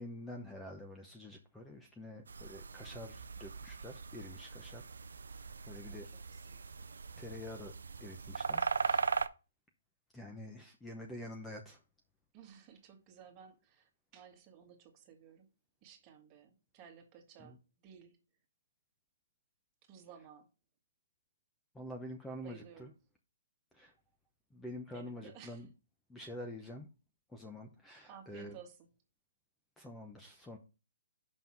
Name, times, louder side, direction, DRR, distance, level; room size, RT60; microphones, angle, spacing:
voice 1, 0.0-4.8 5.7-6.1 7.2-7.7 8.0-9.0 10.1-11.8 17.4-17.6 21.7-22.9 23.7-23.9 24.5-25.7 26.1-26.9 27.3-28.6 29.8-30.6, left 1 dB, 5° left, 0.8 m, -47 dB
sound 1, 2.3-9.3, right 5 dB, 80° right, 0.5 m, -39 dB
voice 2, 5.7-6.6 12.3-15.5 15.8-17.6 17.8-18.2 19.9-20.5 22.4-22.9 24.9-25.6 28.1-28.9, right 8 dB, 25° right, 1.6 m, -56 dB
5.7 x 5.5 x 5.9 m
hypercardioid pair, 150°, 0 cm